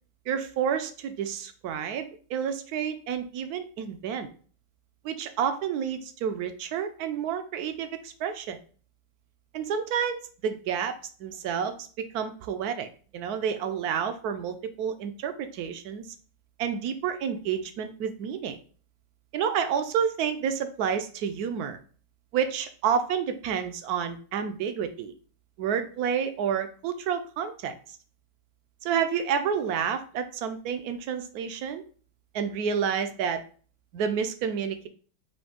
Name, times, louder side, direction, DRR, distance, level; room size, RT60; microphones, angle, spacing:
voice 1, 0.3-4.3 5.0-8.6 9.5-12.9 13.1-16.1 16.6-18.6 19.3-21.8 22.3-25.1 25.6-27.7 28.8-31.8 32.3-33.4 33.9-34.9, right 7 dB, 70° right, 9 dB, 1.0 m, -29 dB
5.2 x 2.7 x 3.6 m, 0.42 s
omnidirectional pair, 1.9 m